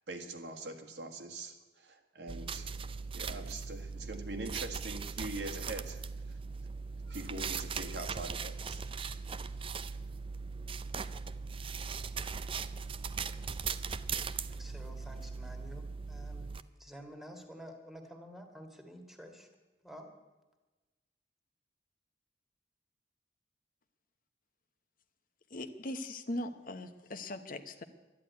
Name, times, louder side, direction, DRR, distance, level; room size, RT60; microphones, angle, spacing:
voice 1, 0.1-2.7 3.1-6.4 7.0-8.8, right 2 dB, 70° right, 4 dB, 1.8 m, -43 dB
sound 1, 2.3-16.6, right 5 dB, 30° right, 0.5 m, -39 dB
voice 2, 14.5-16.5 16.8-19.5 19.8-20.1, equal, ahead, 5 dB, 1.9 m, -50 dB
voice 3, 25.5-27.8, left 1 dB, 50° left, 9 dB, 1.0 m, -40 dB
12.5 x 11.0 x 9.5 m, 1.2 s
head